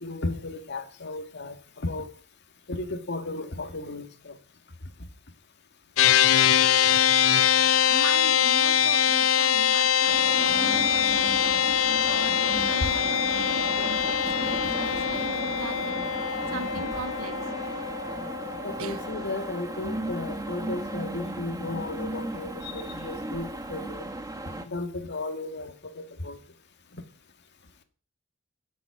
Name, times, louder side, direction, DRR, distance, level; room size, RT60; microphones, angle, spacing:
voice 1, 0.0-2.1 2.7-4.4 12.8-12.9 18.6-24.1 24.7-26.4, left 2 dB, 55° left, 2.0 m, -34 dB
sound 1, 6.0-19.5, left 9 dB, 80° left, 0.6 m, -23 dB
voice 2, 7.8-17.5 18.8-19.1, right 4 dB, 85° right, 0.9 m, -40 dB
sound 2, 10.1-24.7, right 1 dB, 15° right, 1.4 m, -35 dB
11.0 x 7.7 x 8.4 m
head